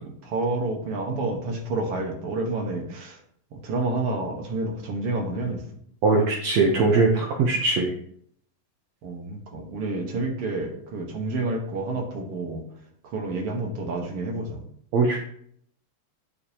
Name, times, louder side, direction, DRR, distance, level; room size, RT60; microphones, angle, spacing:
voice 1, 0.0-3.2 3.5-5.6 9.0-12.6 13.1-14.6, right 2 dB, 55° right, 1 dB, 1.8 m, -29 dB
voice 2, 6.0-7.9 14.9-15.2, right 3 dB, 75° right, 1 dB, 1.5 m, -21 dB
9.3 x 6.9 x 2.9 m, 0.65 s
omnidirectional pair, 4.2 m